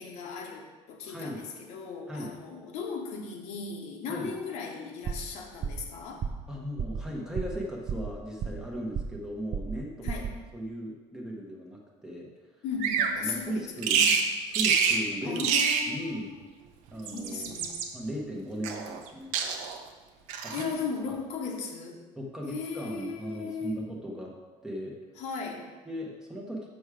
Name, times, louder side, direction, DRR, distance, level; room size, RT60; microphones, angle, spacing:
voice 1, 0.0-6.3 10.0-10.3 12.6-14.2 15.2-16.4 17.0-17.9 20.5-22.0 22.5-23.8 25.2-25.7, left 5 dB, 65° left, 2 dB, 1.2 m, -37 dB
voice 2, 1.1-1.5 2.1-2.4 4.1-4.3 6.5-10.3 10.5-12.3 13.0-14.0 14.4-15.5 15.9-16.3 16.9-17.5 17.9-19.3 19.6-19.8 20.4-20.7 21.1-21.2 22.2-24.3 24.6-25.0 25.9-26.7, equal, 5° right, -2 dB, 1.0 m, -37 dB
sound 1, 5.0-5.3 5.6-5.9 6.2-6.5 6.8-7.0 7.4-7.6 7.9-8.7 8.9-9.3 9.5-9.8 10.1-10.4, right 7 dB, 30° right, 0.4 m, -33 dB
Bird vocalization bird call bird song, 12.8-13.2 13.8-14.3 14.5-15.0 15.4-15.9 16.9-17.9 18.6-19.1 19.3-19.8 20.3-20.7, right 6 dB, 80° right, 0.9 m, -26 dB
7.1 x 6.3 x 4.9 m, 1.2 s
cardioid pair, 175°, 12 cm